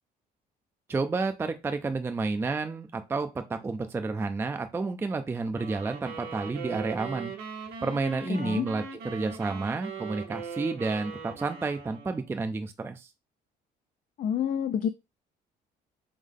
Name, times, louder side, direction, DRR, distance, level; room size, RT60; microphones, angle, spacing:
voice 1, 0.9-7.3 7.8-13.1, right 3 dB, 15° right, 7 dB, 0.4 m, -30 dB
sound 1, 5.5-12.3, right 5 dB, 75° right, 1.2 m, -40 dB
voice 2, 8.3-8.7 14.2-14.9, left 8 dB, 50° left, 8 dB, 0.4 m, -28 dB
3.5 x 3.2 x 3.6 m, 0.25 s
cardioid pair, 110°, 17 cm